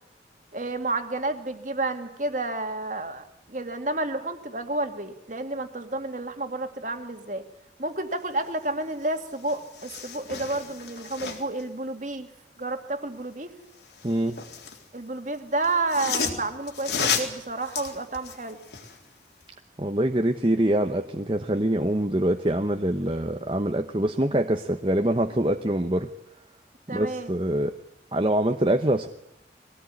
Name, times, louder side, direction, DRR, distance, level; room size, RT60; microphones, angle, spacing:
voice 1, 0.5-7.4 7.8-12.3 12.6-13.5 14.9-18.6 26.9-27.3, right 2 dB, 45° right, 6 dB, 2.2 m, -30 dB
sound 1, 9.0-9.1 9.4-11.6 13.8-14.8 15.6-19.0 19.4-19.5, left 6 dB, 70° left, 3.7 m, -32 dB
voice 2, 14.0-14.4 19.8-26.1 26.9-27.7 28.1-29.1, right 1 dB, 30° right, 5 dB, 1.0 m, -24 dB
22.0 x 17.5 x 9.8 m, 0.87 s
head